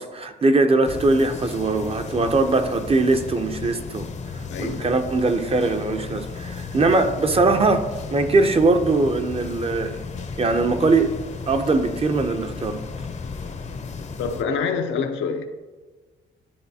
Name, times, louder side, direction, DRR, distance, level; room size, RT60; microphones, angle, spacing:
voice 1, 0.0-4.1 4.3-10.0 10.4-11.1 11.5-12.8, right 3 dB, 30° right, 0.6 m, -21 dB
sound 1, 0.9-14.4, left 4 dB, 35° left, 0.6 m, -34 dB
voice 2, 4.5-4.9 14.2-15.5, left 5 dB, 75° left, 0.6 m, -26 dB
11.0 x 3.9 x 2.7 m
cardioid pair, 90°, 20 cm